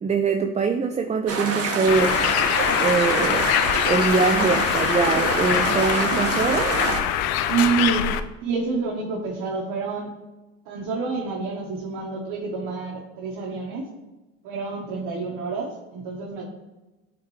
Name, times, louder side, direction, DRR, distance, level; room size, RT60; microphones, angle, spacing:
voice 1, 0.0-2.2 2.8-3.5 3.8-6.7, right 4 dB, 20° right, 4 dB, 0.4 m, -23 dB
sound 1, 1.3-7.0, right 3 dB, 40° right, 1.4 m, -26 dB
Bird, 1.9-8.2, left 11 dB, 75° left, 0.5 m, -24 dB
voice 2, 7.5-8.1 8.4-10.1 10.6-13.8 14.4-16.5, right 5 dB, 70° right, -2 dB, 1.2 m, -28 dB
9.2 x 3.7 x 3.1 m, 1.1 s
supercardioid pair, 80°, 36 cm